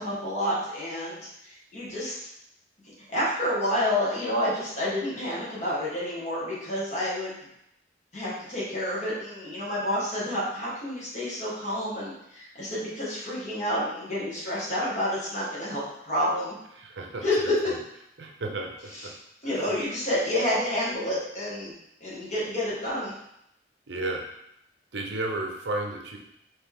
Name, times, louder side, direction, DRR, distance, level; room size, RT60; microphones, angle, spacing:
voice 1, 0.0-2.1 2.8-7.4 8.1-16.6 17.2-17.5 19.0-19.1 19.4-21.7 22.0-23.1, left 1 dB, 40° left, -7 dB, 1.6 m, -29 dB
voice 2, 16.7-17.8 18.2-19.1 19.4-19.7 23.9-24.3 24.9-26.2, right 2 dB, 75° right, 1 dB, 0.7 m, -33 dB
4.4 x 3.0 x 3.5 m, 0.78 s
head